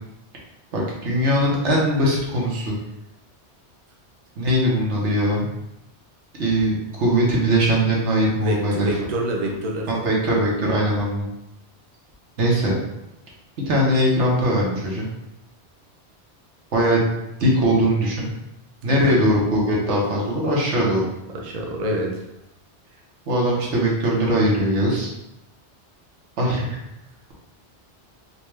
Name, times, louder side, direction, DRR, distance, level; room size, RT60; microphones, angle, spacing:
voice 1, 0.7-2.7 4.4-5.5 6.4-9.0 9.4-9.6 9.9-11.3 12.4-12.7 13.7-15.1 16.7-17.1 17.4-18.3 18.8-21.0 23.3-25.1 26.4-26.8, equal, 90° right, -3 dB, 1.3 m, -20 dB
voice 2, 8.4-10.1 18.9-19.2 21.4-22.2, right 1 dB, 45° right, 0 dB, 0.6 m, -27 dB
4.1 x 2.3 x 3.2 m, 0.87 s
omnidirectional pair, 1.2 m